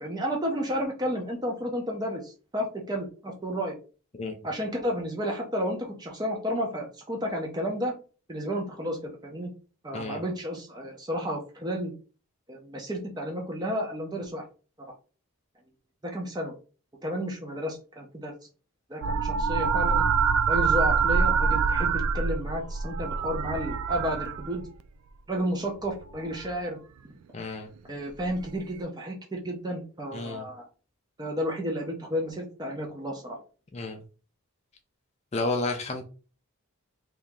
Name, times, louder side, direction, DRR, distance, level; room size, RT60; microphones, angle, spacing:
voice 1, 0.0-3.7 4.4-7.9 8.3-9.5 9.8-11.9 12.5-14.4 16.0-16.5 17.0-18.3 18.9-20.0 20.5-24.7 25.3-26.8 27.0-27.1 27.9-30.6 31.2-33.4, equal, 20° right, 0 dB, 0.6 m, -32 dB
sound 1, 19.0-24.8 26.0-26.5 28.3-28.4, right 5 dB, 75° right, 0.4 m, -25 dB
voice 2, 27.3-27.7 30.1-30.5 33.7-34.0 35.3-36.0, left 3 dB, 30° left, 4 dB, 0.4 m, -31 dB
3.0 x 2.7 x 3.5 m, 0.36 s
head